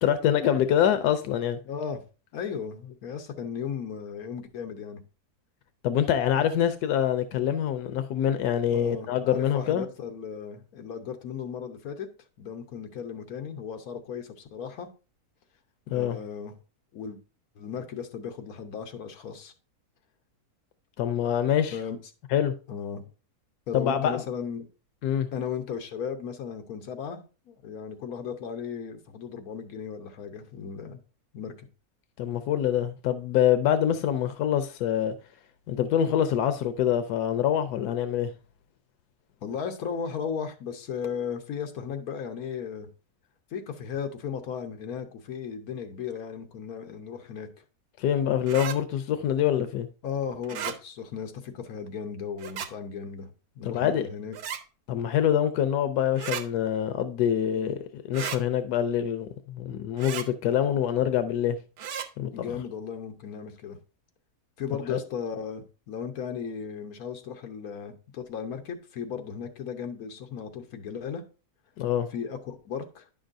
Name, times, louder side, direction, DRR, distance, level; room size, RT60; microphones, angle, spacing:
voice 1, 0.0-1.6 5.8-9.9 15.9-16.2 21.0-21.8 22.3-22.5 23.7-24.2 25.0-25.3 32.2-35.1 35.7-38.3 48.0-49.9 53.6-54.1 54.9-61.6 62.2-62.6 64.9-65.0 71.8-72.1, left 10 dB, 90° left, 1.2 m, -25 dB
voice 2, 1.6-2.0 2.3-5.0 8.7-12.1 12.4-14.9 15.9-16.5 16.9-17.2 17.6-19.5 21.7-22.0 22.7-23.0 23.7-24.7 25.3-31.0 31.3-31.5 39.4-42.9 43.5-47.5 50.0-53.3 53.6-54.3 62.3-63.8 64.6-71.2 72.1-73.0, left 7 dB, 70° left, 1.4 m, -36 dB
sound 1, 48.5-48.8 50.4-50.8 52.4-52.7 54.3-54.6 56.1-56.4 58.1-58.4 60.0-60.3 61.8-62.1, right 8 dB, 70° right, 1.1 m, -34 dB
9.7 x 6.3 x 2.6 m
omnidirectional pair, 1.7 m